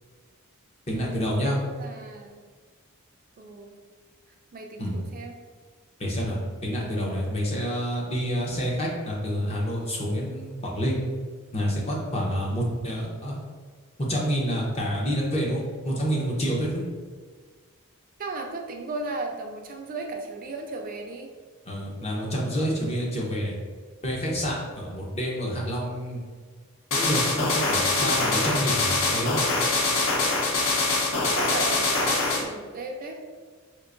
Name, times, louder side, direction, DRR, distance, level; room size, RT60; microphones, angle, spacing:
voice 1, 0.9-1.6 4.8-5.0 6.0-11.0 11.5-13.4 14.1-16.9 21.6-23.5 24.0-26.2 26.9-29.4, equal, 30° left, -3 dB, 0.7 m, -28 dB
voice 2, 1.4-2.4 3.4-3.7 4.5-5.4 18.2-21.3 31.3-33.2, right 3 dB, 40° right, 3 dB, 0.4 m, -35 dB
sound 1, 26.9-32.4, left 3 dB, 60° left, 0.6 m, -24 dB
4.5 x 2.5 x 2.5 m, 1.5 s
head